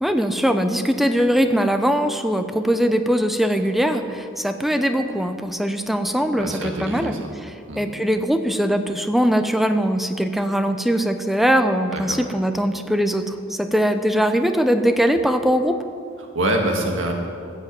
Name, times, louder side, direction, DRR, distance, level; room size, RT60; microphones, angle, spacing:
voice 1, 0.0-7.2 7.7-15.8, equal, ahead, 7 dB, 0.6 m, -21 dB
voice 2, 6.4-7.3 7.7-7.8 11.9-12.2 16.2-17.1, right 1 dB, 75° right, 2 dB, 1.8 m, -25 dB
14.5 x 8.2 x 7.5 m, 2.3 s
head